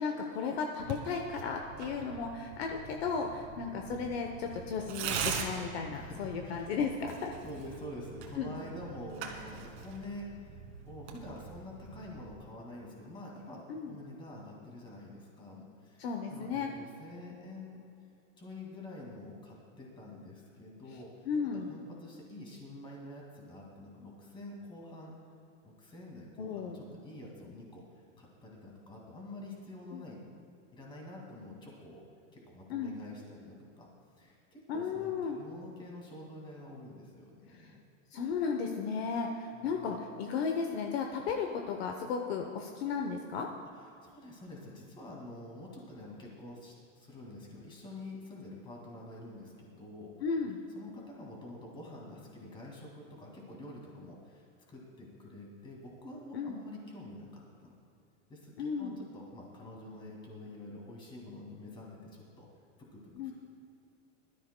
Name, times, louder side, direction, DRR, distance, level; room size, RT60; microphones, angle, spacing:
voice 1, 0.0-7.3 8.4-8.6 13.7-13.9 16.0-16.7 21.3-21.7 26.4-26.8 29.9-30.0 32.7-32.9 34.7-35.4 37.6-37.7 38.1-43.5 50.2-50.6 56.3-56.6 58.6-59.0 63.2-63.3, left 5 dB, 50° left, 3 dB, 0.9 m, -34 dB
Tearing, 0.8-12.3, right 7 dB, 55° right, 1.9 m, -42 dB
voice 2, 5.9-6.7 7.4-17.8 18.4-25.1 25.6-27.8 28.2-30.2 30.7-32.0 32.3-33.9 34.2-37.8 39.5-40.0 43.7-50.1 50.7-57.7 58.3-62.5 62.9-63.3, left 1 dB, 10° left, -2 dB, 2.1 m, -47 dB
21.5 x 13.0 x 2.2 m, 2.6 s
supercardioid pair, 175°, 39 cm